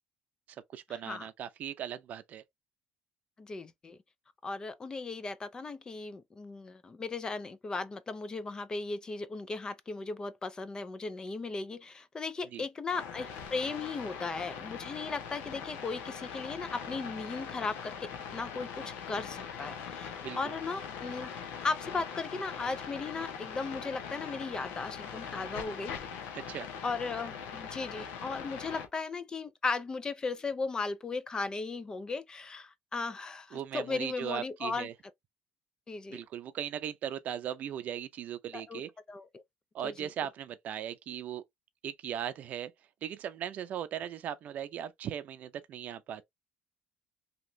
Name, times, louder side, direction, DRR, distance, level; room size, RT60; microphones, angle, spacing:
voice 1, 0.7-2.4 12.5-12.6 20.2-20.4 26.3-26.7 33.5-34.9 36.1-38.9 39.7-41.4 41.8-42.7 43.0-46.3, right 9 dB, 55° right, 0.5 m, -38 dB
voice 2, 3.4-4.0 4.4-21.3 21.6-25.9 26.8-34.9 35.9-36.2 38.5-38.8 39.1-39.4 39.8-40.1, left 4 dB, 25° left, 0.4 m, -37 dB
sound 1, 12.9-28.9, left 7 dB, 90° left, 0.8 m, -42 dB
3.0 x 2.9 x 2.6 m
cardioid pair, 110°, 3 cm